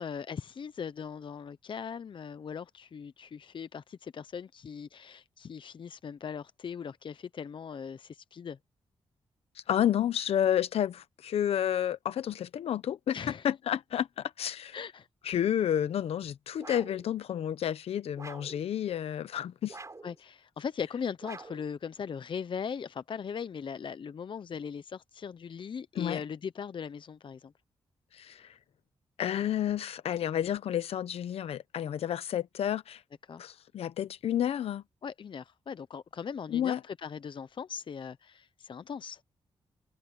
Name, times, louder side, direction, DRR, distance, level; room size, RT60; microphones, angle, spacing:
voice 1, 0.0-8.6 13.1-13.4 14.7-15.1 20.0-27.5 33.3-33.5 35.0-39.2, left 7 dB, 55° left, 0.8 m, -39 dB
voice 2, 9.7-14.8 15.2-19.8 26.0-26.2 28.1-28.5 29.2-33.0 33.4-34.8 36.5-36.8, left 10 dB, 80° left, 1.1 m, -30 dB
sound 1, 16.6-17.1 18.2-18.6 19.7-20.2 21.2-21.7, right 3 dB, 30° right, 5.8 m, -46 dB
cardioid pair, 60°, 10 cm